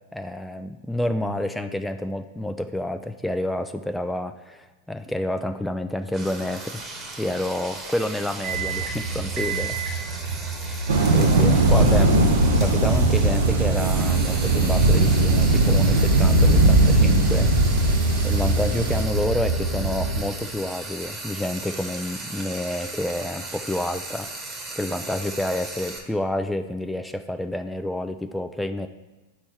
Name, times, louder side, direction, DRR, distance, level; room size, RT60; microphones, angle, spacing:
voice 1, 0.0-6.8 7.2-9.8 11.1-17.5 17.8-17.9 18.2-24.3 24.8-28.9, left 1 dB, 5° left, 6 dB, 0.3 m, -29 dB
Frying (food), 6.1-26.0, right 2 dB, 25° right, 1.2 m, -37 dB
sound 1, 8.4-20.2, right 4 dB, 45° right, 1.7 m, -26 dB
sound 2, 10.9-19.0, right 2 dB, 75° right, 0.9 m, -20 dB
7.0 x 4.2 x 4.6 m, 1.2 s
hypercardioid pair, 100°, 0 cm